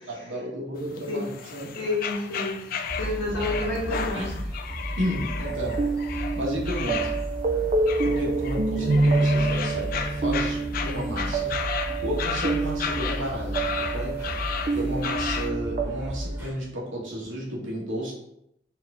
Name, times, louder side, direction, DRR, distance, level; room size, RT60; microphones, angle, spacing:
voice 1, 0.1-1.8 3.3-3.5 4.1-4.4 5.0-5.8 6.3-7.1 8.0-11.7 12.0-14.2 14.7-18.1, equal, 90° right, -4 dB, 1.3 m, -32 dB
sound 1, 0.8-15.5, left 6 dB, 50° left, 0.3 m, -34 dB
voice 2, 1.7-2.6 3.0-4.3, left 2 dB, 80° left, -9 dB, 1.3 m, -29 dB
sound 2, 2.8-16.5, equal, 10° right, 1.2 m, -34 dB
sound 3, 5.4-15.9, right 3 dB, 40° right, 0.5 m, -27 dB
4.5 x 2.6 x 3.5 m, 0.79 s
head